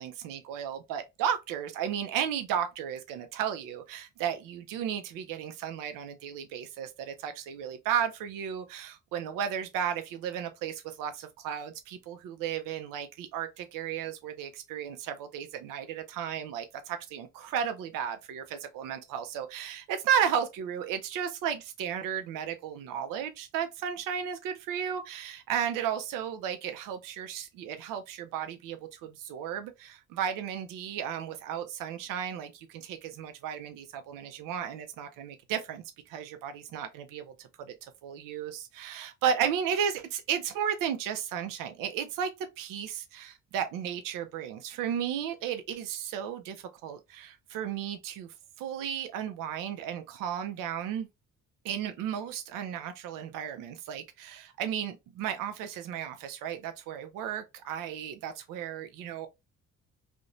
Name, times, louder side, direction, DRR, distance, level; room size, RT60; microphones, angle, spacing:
voice 1, 0.0-37.7 38.0-48.3 48.6-51.1 51.6-59.3, right 8 dB, 85° right, 0.5 m, -34 dB
2.5 x 2.1 x 2.9 m
cardioid pair, 80°, 31 cm